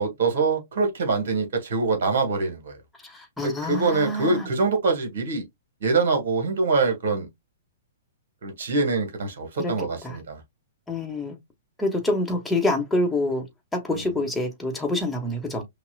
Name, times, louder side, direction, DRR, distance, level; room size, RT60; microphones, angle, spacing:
voice 1, 0.0-2.8 3.4-5.4 5.8-7.3 8.4-10.4 13.9-14.2, right 4 dB, 55° right, 1.6 m, -24 dB
voice 2, 3.4-4.5 9.6-9.7 10.0-10.2 10.9-11.4 11.8-13.4 13.7-15.6, left 1 dB, 5° left, 1.3 m, -26 dB
5.9 x 2.4 x 2.3 m
figure-of-eight pair, 115°, 0 cm